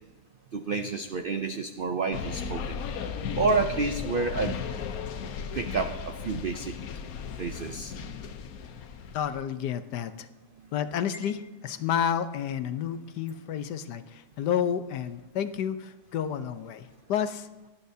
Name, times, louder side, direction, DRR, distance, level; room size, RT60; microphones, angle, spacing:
voice 1, 0.5-2.8 3.4-4.6 5.5-6.8 7.4-7.9, right 4 dB, 75° right, 7 dB, 0.5 m, -29 dB
sound 1, 2.1-9.4, left 6 dB, 65° left, 1.2 m, -36 dB
voice 2, 9.1-10.3 10.7-17.5, left 8 dB, 85° left, 11 dB, 1.4 m, -30 dB
18.0 x 11.5 x 2.7 m, 1.2 s
omnidirectional pair, 1.7 m